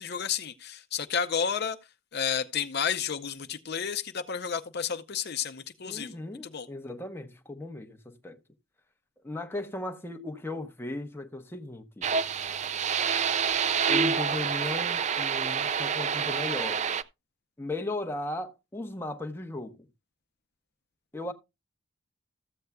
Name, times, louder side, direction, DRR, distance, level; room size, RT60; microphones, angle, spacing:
voice 1, 0.0-1.8 2.1-6.2 6.4-6.7, left 7 dB, 55° left, 0.7 m, -31 dB
voice 2, 5.8-8.4 9.2-12.1 13.9-16.8 17.6-19.8 21.1-21.3, left 2 dB, 10° left, 0.8 m, -36 dB
sound 1, 12.0-17.0, right 6 dB, 35° right, 0.4 m, -27 dB
14.5 x 7.9 x 2.3 m
head